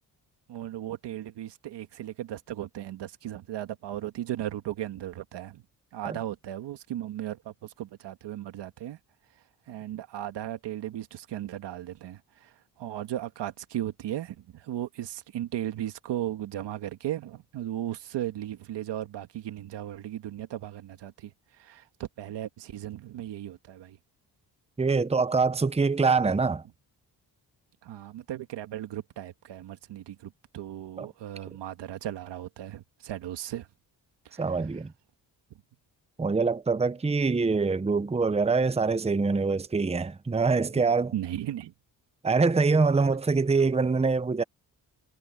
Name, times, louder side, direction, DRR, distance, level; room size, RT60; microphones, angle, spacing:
voice 1, 0.5-5.6 5.9-9.0 9.7-12.5 12.8-21.3 21.6-24.0 27.8-33.7 34.3-34.4 41.1-41.7, right 12 dB, 85° right, 1.9 m, -36 dB
voice 2, 24.8-26.6 31.0-31.1 34.4-34.9 36.2-41.1 42.2-44.4, right 4 dB, 15° right, 0.9 m, -24 dB
cardioid pair, 85°, 41 cm